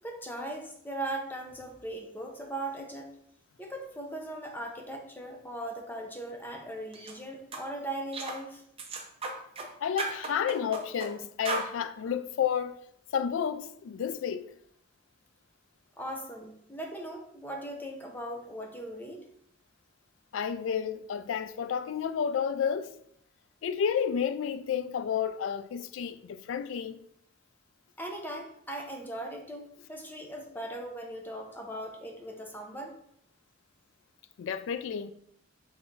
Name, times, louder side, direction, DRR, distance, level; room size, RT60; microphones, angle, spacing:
voice 1, 0.0-3.1 3.6-8.6 16.0-19.2 28.0-32.9, right 1 dB, 10° left, 0.7 m, -39 dB
sound 1, 6.9-7.1 7.5-7.7 8.1-8.4 8.8-9.7 10.0-11.1 11.4-11.7, right 3 dB, 30° right, 0.6 m, -35 dB
voice 2, 9.8-12.8 13.1-14.5 20.3-23.0 23.6-27.0 34.4-35.1, left 7 dB, 75° left, 0.3 m, -31 dB
3.7 x 3.3 x 3.9 m
head